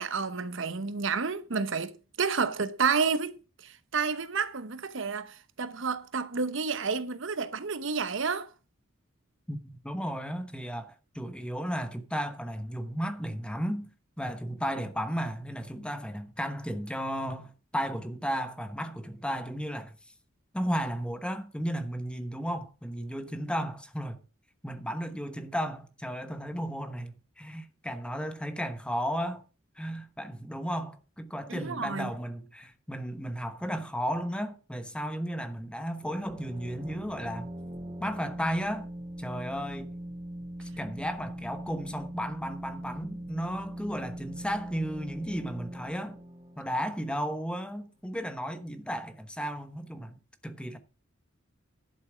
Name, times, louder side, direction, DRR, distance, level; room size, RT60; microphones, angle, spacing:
voice 1, 0.0-1.9 2.2-3.4 3.9-8.5 31.5-32.1, right 5 dB, 65° right, 1.0 m, -30 dB
voice 2, 9.5-13.9 14.2-19.9 20.5-24.2 24.6-29.4 29.8-37.5 38.0-38.9 39.2-40.0 40.6-46.2 46.6-50.2 50.4-50.8, equal, 5° left, 1.1 m, -34 dB
sound 1, 36.0-47.5, right 1 dB, 25° right, 3.6 m, -41 dB
11.5 x 7.0 x 6.1 m
head